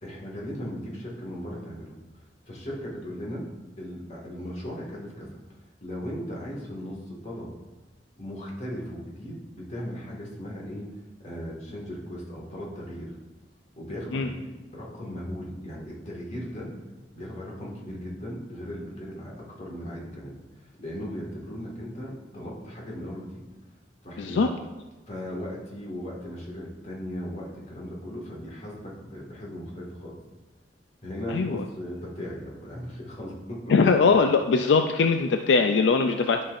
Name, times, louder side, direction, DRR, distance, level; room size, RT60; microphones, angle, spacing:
voice 1, 0.0-2.0 2.5-3.4 3.8-5.3 5.8-7.5 8.2-10.9 11.2-13.2 13.8-14.5 14.7-16.7 17.1-23.4 24.0-24.5 25.1-30.2 31.0-33.7, equal, 40° left, -3 dB, 1.8 m, -37 dB
voice 2, 24.2-24.5 31.3-31.6 33.7-36.4, left 4 dB, 80° left, 6 dB, 0.4 m, -21 dB
11.0 x 5.8 x 2.5 m, 1.2 s
head